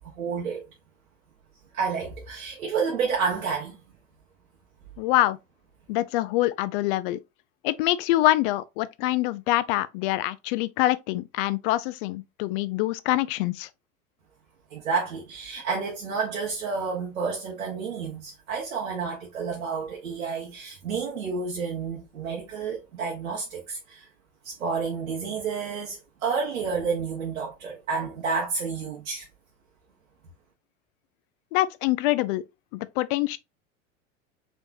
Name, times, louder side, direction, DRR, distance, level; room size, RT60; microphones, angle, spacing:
voice 1, 0.1-0.6 1.7-3.8 14.7-24.1 24.4-29.2, right 5 dB, 80° right, 1.2 m, -30 dB
voice 2, 5.0-5.4 5.9-7.2 7.6-13.7 31.5-32.4 32.7-33.4, left 16 dB, 40° left, 0.4 m, -25 dB
4.1 x 3.3 x 2.6 m
hypercardioid pair, 90°, 41 cm